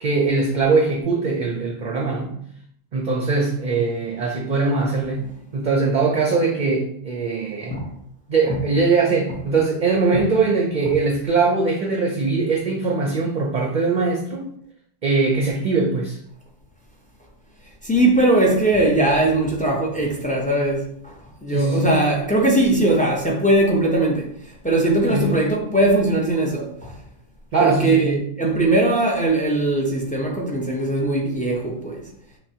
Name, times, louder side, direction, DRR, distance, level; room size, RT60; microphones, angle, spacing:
voice 1, 0.0-2.4 2.9-5.2 5.5-7.8 8.3-14.5 15.0-16.2 21.5-22.0 25.1-25.4 27.5-28.3, right 4 dB, 50° right, 0.6 m, -21 dB
voice 2, 17.8-26.9 27.6-32.0, right 2 dB, 10° left, 0.4 m, -20 dB
5.7 x 2.1 x 2.8 m
omnidirectional pair, 1.2 m